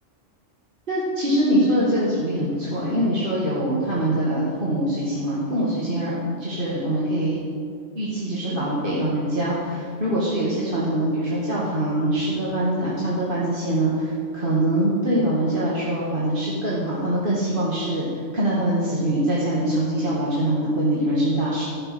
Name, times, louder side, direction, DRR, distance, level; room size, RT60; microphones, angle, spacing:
voice 1, 0.9-7.4 7.9-21.6, right 1 dB, 40° right, -7 dB, 2.2 m, -23 dB
15.5 x 6.7 x 7.8 m, 2.3 s
omnidirectional pair, 1.4 m